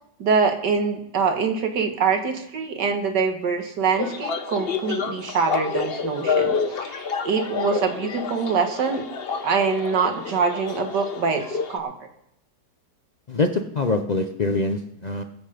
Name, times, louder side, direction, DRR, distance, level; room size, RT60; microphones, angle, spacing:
voice 1, 0.2-9.0 9.4-11.9, right 5 dB, 85° right, 5 dB, 2.0 m, -24 dB
sound 1, 3.9-11.8, left 5 dB, 50° left, 0.8 m, -28 dB
voice 2, 13.3-15.2, left 3 dB, 70° left, 5 dB, 0.4 m, -24 dB
19.5 x 7.8 x 5.0 m, 0.79 s
omnidirectional pair, 1.8 m